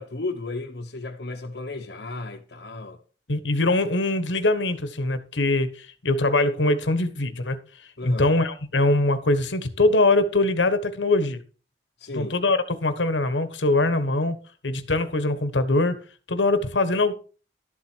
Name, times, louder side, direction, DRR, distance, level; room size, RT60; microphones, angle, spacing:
voice 1, 0.0-3.0 8.0-8.3 12.0-12.3, left 2 dB, 65° left, 1.1 m, -33 dB
voice 2, 3.3-7.6 8.0-11.4 12.1-14.4 14.6-15.9 16.3-17.1, left 2 dB, 85° left, 1.4 m, -22 dB
12.5 x 7.6 x 4.6 m
head